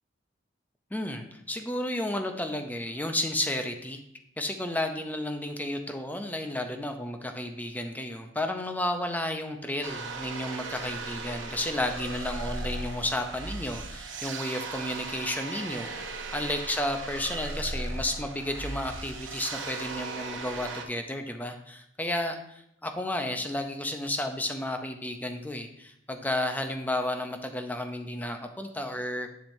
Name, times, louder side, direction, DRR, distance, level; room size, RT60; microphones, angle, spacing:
voice 1, 0.9-4.0 4.4-29.3, left 1 dB, 10° left, 5 dB, 0.6 m, -32 dB
sound 1, 9.8-20.8, right 3 dB, 80° right, 0.8 m, -37 dB
7.4 x 7.1 x 2.7 m, 0.75 s
head